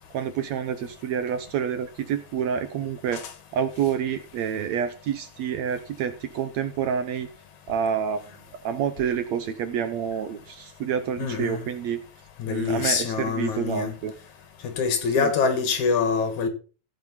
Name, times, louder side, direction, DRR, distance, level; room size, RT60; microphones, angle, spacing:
voice 1, 0.1-3.2 3.5-7.3 7.7-8.2 8.6-12.0 12.5-14.1 15.2-15.3, right 8 dB, 70° right, 1.8 m, -28 dB
voice 2, 11.2-11.6 12.4-14.0 14.6-16.5, left 5 dB, 65° left, 3.0 m, -25 dB
16.0 x 5.9 x 5.7 m
omnidirectional pair, 3.8 m